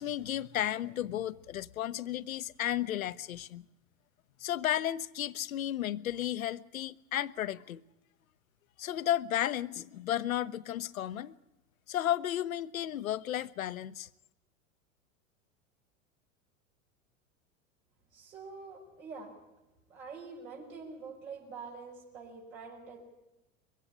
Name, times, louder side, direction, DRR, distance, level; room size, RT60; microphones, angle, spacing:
voice 1, 0.0-3.6 4.4-7.8 8.8-11.4 11.9-14.1, left 12 dB, 85° left, 0.7 m, -33 dB
voice 2, 18.1-19.3 19.9-23.0, right 4 dB, 75° right, 5.8 m, -46 dB
22.5 x 16.0 x 9.8 m
hypercardioid pair, 95°, 40 cm